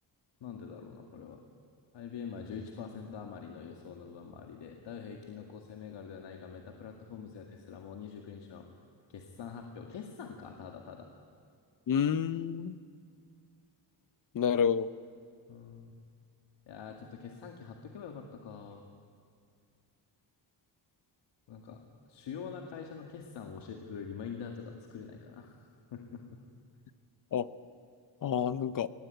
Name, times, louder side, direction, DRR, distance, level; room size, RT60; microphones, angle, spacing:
voice 1, 0.4-1.4 1.9-8.7 9.1-11.1 15.5-15.9 16.7-18.8 21.5-21.8 22.1-25.6 25.9-26.2, left 6 dB, 80° left, 2 dB, 2.0 m, -44 dB
voice 2, 11.9-12.8 14.3-14.9 27.3-27.5 28.2-28.9, left 8 dB, 50° left, 14 dB, 0.8 m, -29 dB
24.0 x 19.5 x 9.2 m, 2.3 s
cardioid pair, 130°, 43 cm